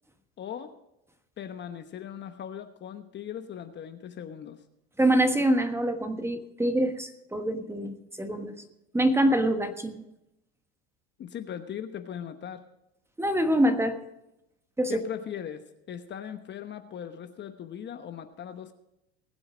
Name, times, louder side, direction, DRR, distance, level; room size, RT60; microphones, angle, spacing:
voice 1, 0.4-0.7 1.4-4.6 11.2-12.6 14.9-18.7, left 9 dB, 35° left, 8 dB, 1.1 m, -39 dB
voice 2, 5.0-8.5 8.9-10.0 13.2-14.0 14.8-15.0, right 1 dB, 10° right, 8 dB, 1.3 m, -25 dB
20.5 x 7.8 x 5.0 m, 0.85 s
supercardioid pair, 110°, 33 cm